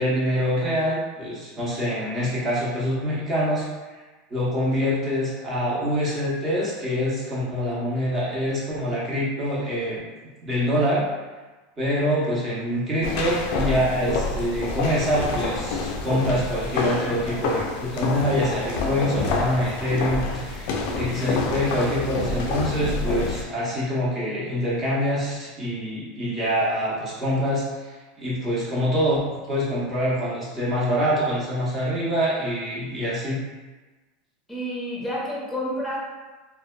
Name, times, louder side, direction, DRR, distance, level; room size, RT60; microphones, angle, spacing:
voice 1, 0.0-3.7 3.9-4.0 4.3-10.0 10.4-11.1 11.8-29.2 29.5-33.4, equal, 25° right, -8 dB, 0.8 m, -25 dB
sound 1, 13.0-23.4, left 3 dB, 70° left, 0.3 m, -28 dB
voice 2, 34.5-36.0, equal, 5° left, -6 dB, 0.7 m, -29 dB
2.5 x 2.1 x 2.3 m, 1.2 s
supercardioid pair, 135°, 0 cm